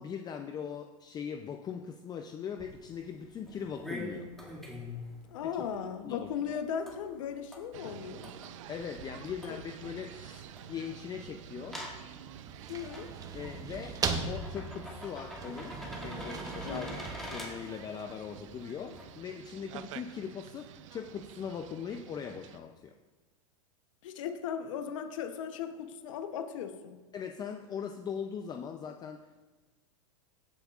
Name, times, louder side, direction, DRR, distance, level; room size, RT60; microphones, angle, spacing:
voice 1, 0.0-4.3 6.0-6.3 8.7-11.8 13.3-22.9 27.1-29.5, left 7 dB, 25° left, 6 dB, 0.5 m, -40 dB
sound 1, 2.6-19.2, left 1 dB, ahead, 2.2 m, -47 dB
voice 2, 5.3-8.3 9.5-9.6 12.7-13.1 16.6-17.0 24.0-27.0, left 8 dB, 70° left, 7 dB, 0.9 m, -37 dB
sound 2, 7.7-22.6, right 11 dB, 70° right, 0.6 m, -49 dB
sound 3, 12.3-18.4, right 4 dB, 20° right, 0.9 m, -39 dB
15.5 x 7.9 x 2.4 m, 1.3 s
hypercardioid pair, 120°, 17 cm